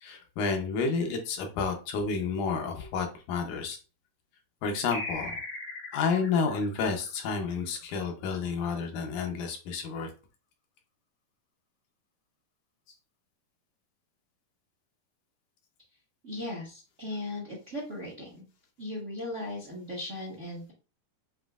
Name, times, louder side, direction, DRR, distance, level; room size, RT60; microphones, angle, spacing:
voice 1, 0.0-3.8 4.6-5.4 5.9-10.1, left 5 dB, 75° left, 3 dB, 2.3 m, -30 dB
sound 1, 4.9-7.9, left 3 dB, 50° left, 1.4 m, -40 dB
voice 2, 16.2-18.4 18.8-20.7, left 1 dB, 40° right, -3 dB, 1.0 m, -37 dB
7.3 x 2.9 x 2.4 m, 0.34 s
omnidirectional pair, 3.7 m